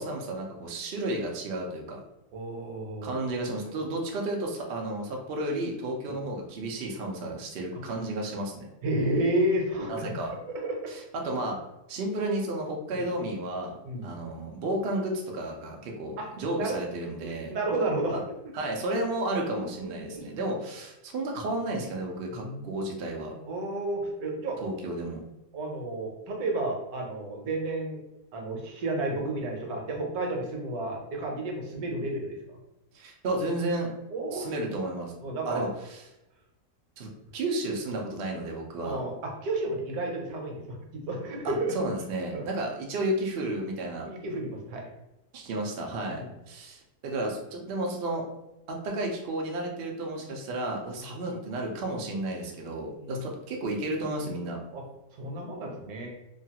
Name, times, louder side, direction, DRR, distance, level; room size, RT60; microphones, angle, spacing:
voice 1, 0.0-2.0 3.0-8.7 9.9-10.3 11.1-11.6 11.9-13.8 14.0-17.5 18.5-23.3 24.6-25.2 32.9-33.9 34.3-35.1 35.5-36.0 37.0-39.0 41.4-44.1 45.3-48.3 48.7-54.6, right 1 dB, 85° right, 0 dB, 0.5 m, -32 dB
voice 2, 2.3-3.2 6.0-6.2 7.7-7.8 8.8-10.2 10.5-10.9 12.9-13.0 13.8-14.2 16.2-16.3 16.6-16.8 17.2-18.2 18.5-18.6 19.5-20.3 22.3-22.7 23.5-24.6 25.5-28.0 28.3-32.4 34.1-34.5 35.2-35.7 38.8-41.7 42.3-42.5 44.0-44.9 46.0-46.3 53.0-53.2 54.7-54.8 55.1-56.1, right 2 dB, 70° right, 1 dB, 1.1 m, -32 dB
2.9 x 2.3 x 2.8 m, 0.93 s
omnidirectional pair, 1.7 m